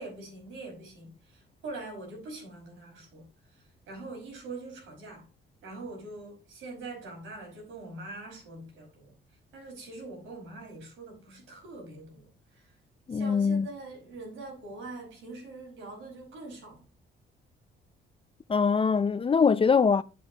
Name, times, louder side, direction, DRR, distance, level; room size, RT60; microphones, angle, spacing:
voice 1, 0.0-3.3 3.5-5.3 5.6-9.1 9.5-12.8 13.1-16.9, right 2 dB, 90° right, 5.3 m, -43 dB
voice 2, 13.1-13.7 18.5-20.0, left 5 dB, 30° left, 0.5 m, -23 dB
9.4 x 7.5 x 2.9 m
cardioid pair, 90°, 20 cm